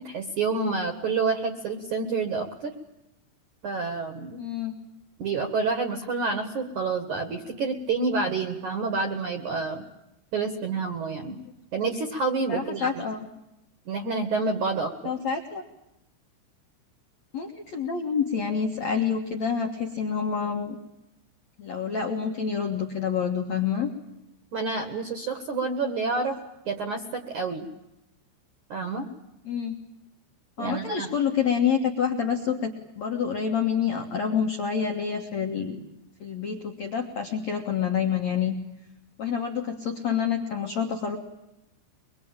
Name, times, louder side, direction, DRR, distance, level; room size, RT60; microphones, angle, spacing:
voice 1, 0.0-2.7 3.6-4.4 5.2-9.9 10.3-11.4 11.7-13.0 13.9-14.9 24.5-26.4 26.7-27.7 28.7-29.1 30.6-31.1, right 4 dB, 60° right, 7 dB, 2.0 m, -28 dB
voice 2, 4.4-4.7 12.5-13.2 15.0-15.7 17.3-20.8 21.6-23.9 29.5-29.7 30.6-35.8 36.2-38.5 39.2-41.2, left 7 dB, 80° left, 2 dB, 1.5 m, -27 dB
24.5 x 23.0 x 8.9 m, 0.92 s
omnidirectional pair, 5.9 m